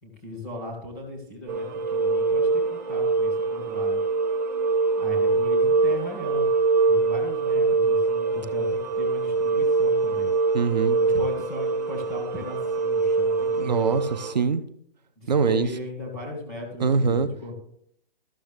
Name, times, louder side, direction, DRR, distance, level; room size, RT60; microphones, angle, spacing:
voice 1, 0.0-4.0 5.0-6.5 6.9-10.3 11.0-14.0 15.2-17.5, left 2 dB, ahead, -17 dB, 0.4 m, -37 dB
sound 1, 1.5-14.3, right 4 dB, 20° right, 0.8 m, -24 dB
voice 2, 10.5-11.0 13.6-14.6 15.3-15.7 16.8-17.3, right 5 dB, 45° right, 12 dB, 0.6 m, -23 dB
13.5 x 6.4 x 3.4 m, 0.67 s
hypercardioid pair, 175°, 30 cm